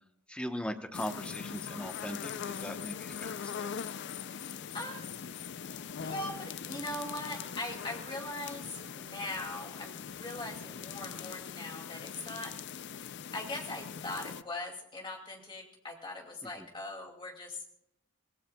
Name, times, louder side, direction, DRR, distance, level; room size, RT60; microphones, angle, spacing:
voice 1, 0.3-3.7 16.6-16.7, equal, 5° left, 5 dB, 0.9 m, -39 dB
sound 1, 0.9-14.4, left 7 dB, 50° left, 0.4 m, -41 dB
voice 2, 4.7-5.0 6.0-12.5 13.3-17.6, left 2 dB, 20° left, 1 dB, 2.5 m, -40 dB
24.5 x 17.5 x 2.3 m, 0.78 s
head